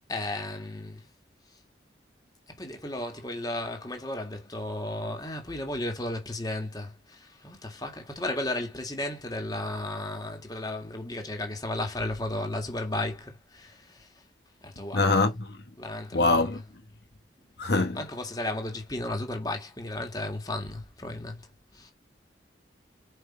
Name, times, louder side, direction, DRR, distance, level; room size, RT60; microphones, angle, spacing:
voice 1, 0.1-1.1 2.5-14.1 14.6-15.1 15.8-16.6 17.9-21.5 21.7-21.9, left 1 dB, 20° left, 1.9 m, -34 dB
voice 2, 14.9-15.5 16.1-16.6 17.6-18.0, left 3 dB, 60° left, 1.2 m, -23 dB
5.8 x 5.3 x 4.4 m
head